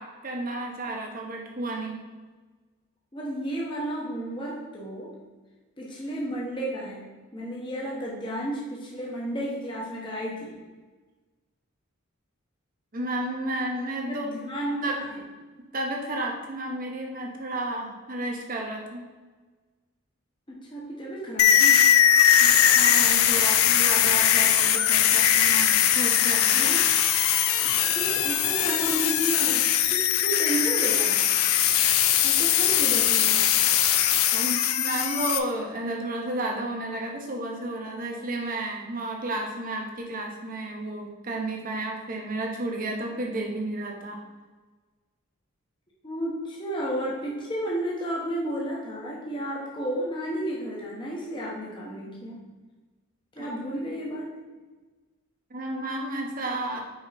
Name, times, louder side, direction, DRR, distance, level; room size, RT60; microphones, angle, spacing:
voice 1, 0.0-2.0 12.9-14.5 14.8-15.0 15.7-19.1 22.4-26.7 34.3-44.2 52.3-52.4 53.4-53.5 55.5-56.8, right 1 dB, 40° right, 1 dB, 1.0 m, -32 dB
voice 2, 3.1-5.1 5.8-7.0 7.3-10.5 14.1-15.1 20.5-21.8 26.5-26.9 27.9-31.2 32.2-33.4 46.0-52.4 53.3-54.3, right 1 dB, 20° left, -4 dB, 1.0 m, -32 dB
sound 1, 21.4-35.4, left 10 dB, 80° left, 0.5 m, -21 dB
5.3 x 4.7 x 4.1 m, 1.3 s
head